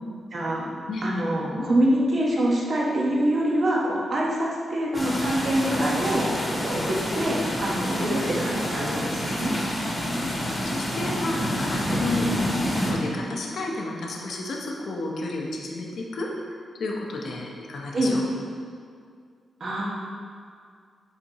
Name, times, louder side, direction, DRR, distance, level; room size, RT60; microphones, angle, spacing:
voice 1, 0.3-0.7 1.0-9.5 17.9-18.1 19.6-19.9, right 1 dB, 50° right, -3 dB, 1.2 m, -25 dB
sound 1, 4.9-12.9, equal, 15° left, 1.3 m, -28 dB
voice 2, 9.9-10.3 10.6-12.5 12.9-16.3 16.8-18.3, left 2 dB, 70° left, -1 dB, 0.9 m, -32 dB
8.4 x 4.2 x 2.9 m, 2.1 s
cardioid pair, 110°, 0 cm